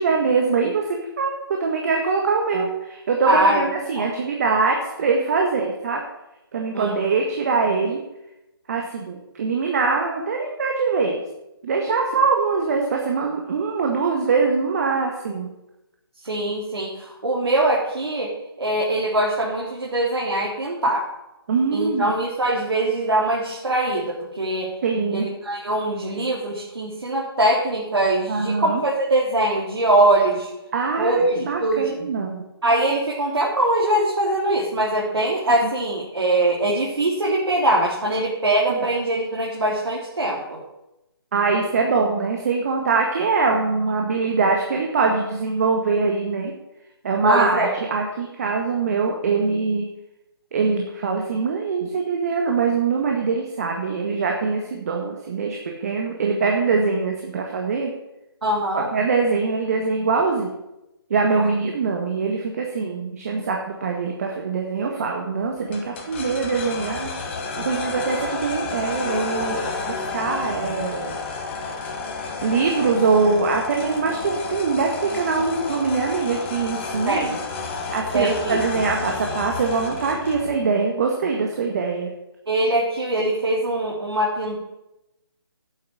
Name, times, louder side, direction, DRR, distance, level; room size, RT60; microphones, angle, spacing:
voice 1, 0.0-6.0 6.5-8.0 8.7-11.2 11.6-15.5 21.5-22.1 24.8-25.3 28.3-28.8 30.7-32.4 38.7-38.8 41.3-46.5 47.0-49.8 50.5-57.9 58.7-60.5 61.1-67.1 67.6-71.1 72.4-77.4 77.9-82.1, right 4 dB, 40° right, 1 dB, 1.7 m, -23 dB
voice 2, 3.3-3.6 4.0-4.1 6.7-7.0 16.2-18.3 18.6-21.0 21.7-24.7 25.1-30.5 31.0-31.9 32.6-40.6 47.2-47.7 58.4-58.9 61.4-61.5 77.1-77.3 78.1-78.6 82.5-84.6, right 1 dB, 80° right, -4 dB, 3.8 m, -22 dB
sound 1, 65.7-80.6, left 4 dB, 25° left, 1.9 m, -31 dB
9.5 x 8.2 x 9.7 m, 0.92 s
hypercardioid pair, 165°, 13 cm